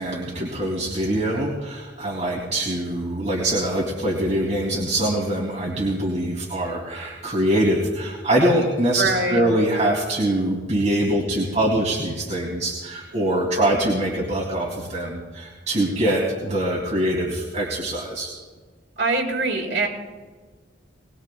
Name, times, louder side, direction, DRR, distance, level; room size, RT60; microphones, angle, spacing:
voice 1, 0.0-18.3, right 1 dB, 40° right, -3 dB, 2.7 m, -23 dB
voice 2, 9.0-9.4 19.0-19.9, right 3 dB, 70° right, 0 dB, 4.5 m, -22 dB
21.5 x 21.0 x 2.3 m, 1.5 s
head